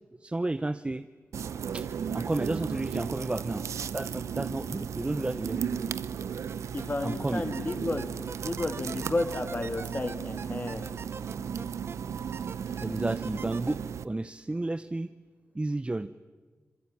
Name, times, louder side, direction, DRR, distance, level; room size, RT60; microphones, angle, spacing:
voice 1, 0.2-1.1 1.7-3.6 3.9-5.7 7.0-7.5 8.6-8.8 12.8-15.1 15.5-16.1, right 2 dB, 20° right, 12 dB, 0.7 m, -32 dB
sound 1, 1.3-14.0, right 7 dB, 85° right, 0.8 m, -35 dB
sound 2, 6.5-7.2 7.5-11.9 12.3-13.7, right 5 dB, 55° right, 1.0 m, -42 dB
voice 2, 6.7-8.0 8.4-10.9, left 2 dB, 35° left, 7 dB, 2.8 m, -32 dB
26.5 x 21.0 x 10.0 m, 1.4 s
cardioid pair, 60°, 5 cm